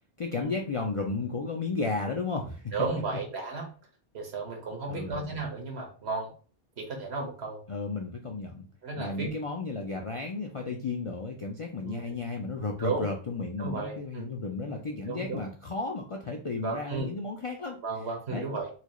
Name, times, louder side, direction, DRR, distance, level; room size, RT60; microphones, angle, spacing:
voice 1, 0.2-2.7 4.9-5.4 7.7-8.7 9.0-17.8 18.3-18.5, left 3 dB, 50° left, 1 dB, 0.4 m, -33 dB
voice 2, 2.7-3.7 4.1-6.3 6.8-7.6 8.8-9.3 11.8-12.2 12.8-13.1 13.6-14.3 15.1-15.4 16.6-17.1 17.8-18.7, right 3 dB, 75° right, 1 dB, 1.4 m, -34 dB
4.2 x 2.3 x 3.0 m, 0.38 s
omnidirectional pair, 1.1 m